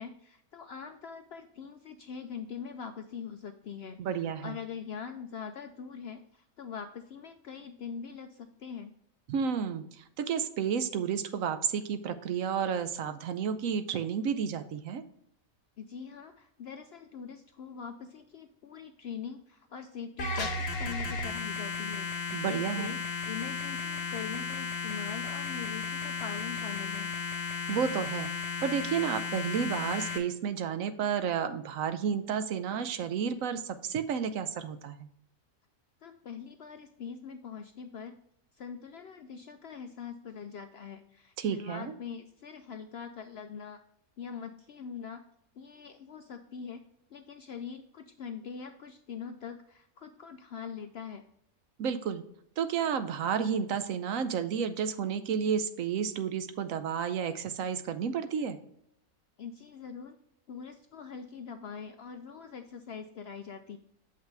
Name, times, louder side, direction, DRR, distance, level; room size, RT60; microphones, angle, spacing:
voice 1, 0.0-8.9 15.8-23.0 23.2-27.1 36.0-38.2 38.5-43.8 44.2-45.2 45.6-46.8 47.1-51.2 59.4-60.2 60.5-63.8, left 6 dB, 65° left, 7 dB, 0.6 m, -43 dB
voice 2, 4.0-4.6 9.3-15.0 22.3-22.9 27.7-28.3 28.6-35.1 41.4-41.9 51.8-52.2 52.6-58.6, right 7 dB, 70° right, 11 dB, 1.0 m, -31 dB
Digital error, 20.2-30.2, left 4 dB, 50° left, 1.1 m, -35 dB
7.7 x 5.6 x 3.3 m, 0.73 s
omnidirectional pair, 1.5 m